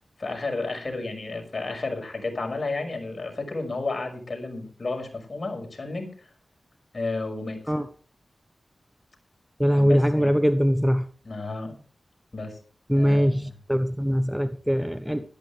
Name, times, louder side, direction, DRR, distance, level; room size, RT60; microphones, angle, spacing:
voice 1, 0.2-6.3 6.9-7.8 9.7-10.4 11.2-11.7 12.3-12.6 12.9-13.5, left 3 dB, 50° left, 5.8 m, -32 dB
voice 2, 9.6-11.1 12.9-15.3, equal, ahead, 1.0 m, -22 dB
17.0 x 12.5 x 3.4 m
cardioid pair, 55°, 0 cm